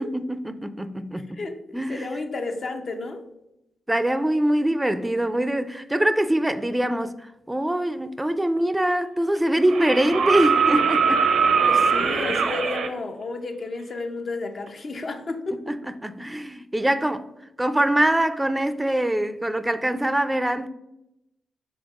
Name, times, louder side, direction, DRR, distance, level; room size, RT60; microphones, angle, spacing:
voice 1, 0.0-1.4 1.7-2.1 3.9-11.2 15.7-17.3 17.6-20.7, right 1 dB, 15° right, 0.3 m, -23 dB
voice 2, 1.3-3.2 11.6-15.8, left 3 dB, 55° left, 0.5 m, -32 dB
sound 1, 8.6-8.7 9.7-12.9 14.7-14.8, right 5 dB, 75° right, 0.5 m, -21 dB
5.1 x 3.6 x 2.4 m
supercardioid pair, 45°, 0 cm